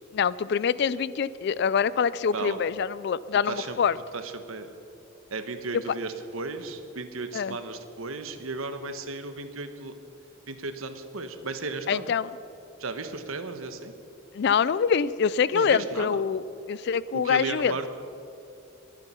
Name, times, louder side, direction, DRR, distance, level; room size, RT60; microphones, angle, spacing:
voice 1, 0.1-4.0 7.3-7.6 11.9-12.3 14.3-16.4 16.7-17.7, left 6 dB, 55° left, 18 dB, 0.3 m, -25 dB
voice 2, 2.3-2.6 3.5-3.8 4.1-4.7 5.3-9.9 10.5-12.1 12.8-13.9 15.5-16.2 17.1-17.9, right 3 dB, 80° right, 8 dB, 1.2 m, -35 dB
23.0 x 9.0 x 5.6 m, 2.8 s
head